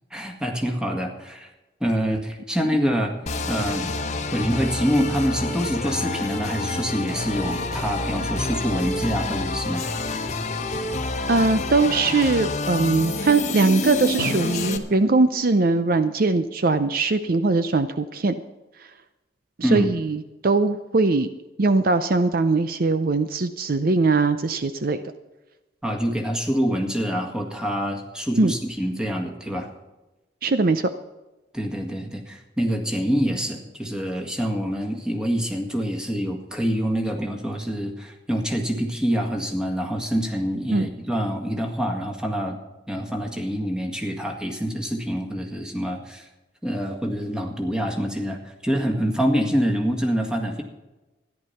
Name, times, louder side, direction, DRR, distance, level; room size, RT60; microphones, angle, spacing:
voice 1, 0.1-1.5 1.8-3.1 3.5-3.9 4.3-9.9 19.6-19.9 25.8-29.7 31.5-42.6 42.9-46.3 46.6-48.4 48.6-50.6, equal, 5° right, 1 dB, 1.8 m, -26 dB
sound 1, 3.3-14.8, left 2 dB, 40° left, 1.1 m, -28 dB
voice 2, 11.3-18.4 19.6-21.3 21.6-25.0 28.4-28.5 30.4-30.9 40.7-40.9, right 3 dB, 50° right, 11 dB, 0.6 m, -21 dB
Drum, 14.2-17.1, left 1 dB, 85° right, 2.1 m, -37 dB
14.0 x 11.0 x 5.7 m, 1.1 s
head